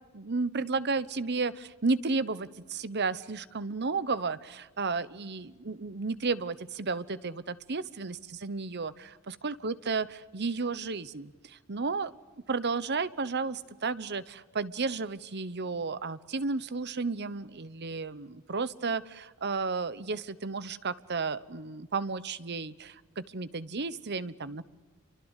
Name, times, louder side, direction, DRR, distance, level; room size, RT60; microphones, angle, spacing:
voice 1, 0.1-12.1 12.5-24.6, right 4 dB, 55° right, 15 dB, 1.0 m, -33 dB
29.5 x 24.0 x 8.3 m, 1.3 s
head